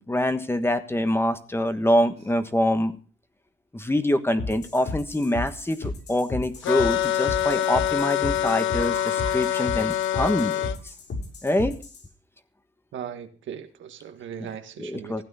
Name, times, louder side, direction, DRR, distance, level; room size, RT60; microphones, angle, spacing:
voice 1, 0.0-2.9 3.7-10.6 11.4-11.8 14.8-15.2, left 1 dB, 10° left, 9 dB, 1.4 m, -25 dB
Crying sobbing, 2.2-2.3 4.8-5.0 6.6-6.7 7.2-7.3 7.5-7.6 8.6-9.7 10.7-11.0 11.6-11.7, right 5 dB, 35° right, 2.3 m, -41 dB
sound 1, 4.4-12.1, left 3 dB, 60° left, 6.6 m, -34 dB
sound 2, 6.6-10.8, left 12 dB, 80° left, 0.7 m, -25 dB
voice 2, 12.9-15.2, right 8 dB, 75° right, 7 dB, 1.7 m, -38 dB
15.5 x 9.1 x 5.6 m, 0.39 s
cardioid pair, 90°, 20 cm